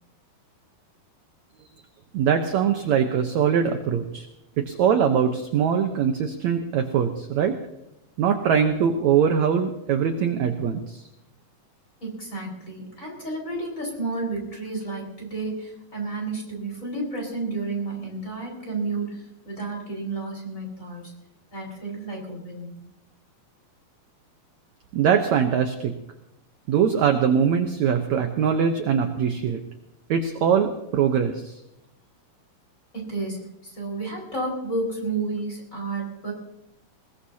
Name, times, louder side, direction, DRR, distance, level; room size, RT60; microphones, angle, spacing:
voice 1, 2.1-4.3 4.6-7.5 8.2-11.0 24.9-25.9 26.7-29.6 30.1-31.5, right 7 dB, 70° right, 5 dB, 1.8 m, -22 dB
voice 2, 12.0-21.1 21.5-22.7 32.9-36.3, right 3 dB, 20° left, -1 dB, 5.2 m, -31 dB
21.0 x 20.0 x 2.8 m, 0.86 s
omnidirectional pair, 4.4 m